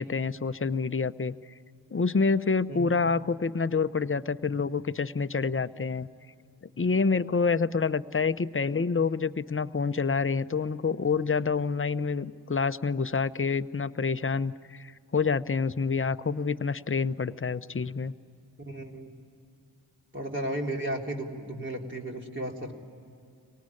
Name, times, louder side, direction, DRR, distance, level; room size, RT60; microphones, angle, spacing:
voice 1, 0.0-1.3 1.9-6.1 6.8-18.1, left 5 dB, 30° left, 12 dB, 0.8 m, -27 dB
voice 2, 18.7-19.1 20.1-22.7, right 1 dB, 25° right, 0 dB, 3.6 m, -34 dB
24.0 x 18.5 x 9.8 m, 2.6 s
cardioid pair, 45°, 43 cm